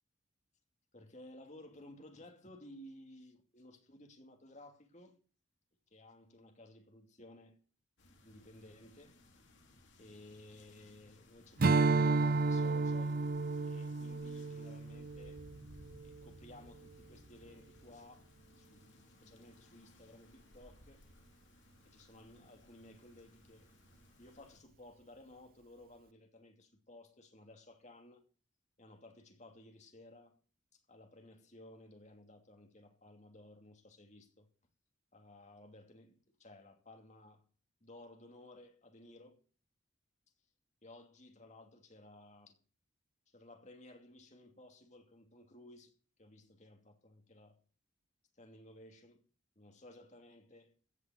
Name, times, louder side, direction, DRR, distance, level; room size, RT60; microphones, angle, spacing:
voice 1, 0.9-5.2 5.9-7.6 8.2-9.2 10.0-13.2 13.6-15.4 16.0-18.3 18.6-21.0 21.9-23.7 24.2-28.2 28.8-30.4 30.7-34.5 35.1-37.4 37.8-39.4 40.8-42.5 43.3-45.9 46.2-47.6 48.4-49.2 49.6-50.8, left 1 dB, 40° left, 2.7 m, -57 dB
sound 1, 8.0-24.6, left 1 dB, 70° left, 3.1 m, -62 dB
Strum, 11.6-16.3, right 3 dB, 50° right, 0.5 m, -32 dB
16.0 x 5.6 x 9.1 m
head